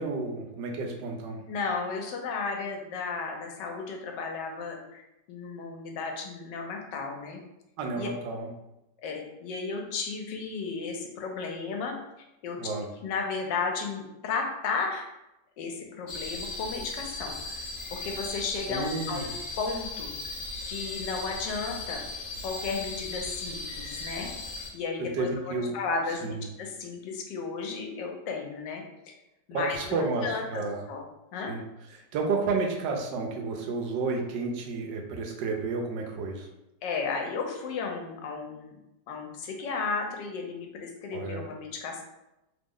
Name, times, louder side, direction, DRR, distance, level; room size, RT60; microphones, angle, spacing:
voice 1, 0.0-1.4 7.8-8.5 12.6-12.9 18.7-19.2 25.1-25.8 26.2-26.4 29.5-30.8 31.5-31.6 31.9-36.5 41.1-41.4, right 3 dB, 80° right, 2 dB, 1.3 m, -31 dB
voice 2, 1.5-5.0 5.3-7.4 7.9-8.1 9.0-11.9 12.4-12.6 13.0-15.1 15.6-17.5 17.9-20.1 20.7-22.0 22.4-24.3 24.7-29.1 29.5-31.0 31.3-31.5 36.8-38.8 39.1-42.0, left 4 dB, 80° left, 2 dB, 1.2 m, -34 dB
sound 1, 16.1-24.7, left 2 dB, 55° left, 0.9 m, -37 dB
3.2 x 2.0 x 3.6 m, 0.90 s
omnidirectional pair, 1.9 m